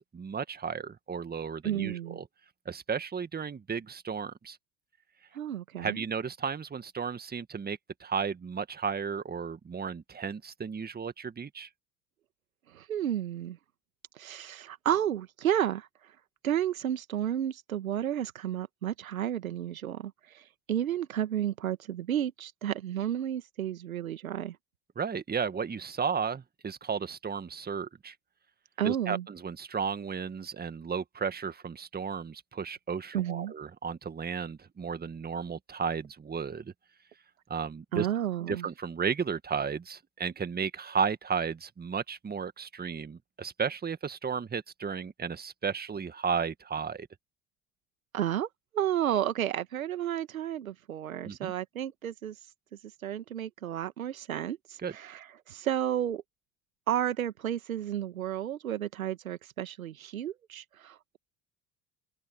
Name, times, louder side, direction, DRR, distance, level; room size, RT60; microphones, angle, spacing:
voice 1, 0.0-2.3 2.7-4.6 5.8-11.7 25.0-28.1 28.8-36.7 37.5-38.1 38.5-47.1 51.2-51.5 54.8-54.9, right 6 dB, 25° right, 1.9 m, -34 dB
voice 2, 1.6-2.2 5.3-6.1 12.7-13.6 14.2-15.9 16.4-24.6 28.8-29.2 33.1-33.5 37.9-38.7 48.1-48.5 48.7-52.4 53.0-56.2 56.9-61.2, right 10 dB, 80° right, 2.0 m, -32 dB
hypercardioid pair, 65°, 41 cm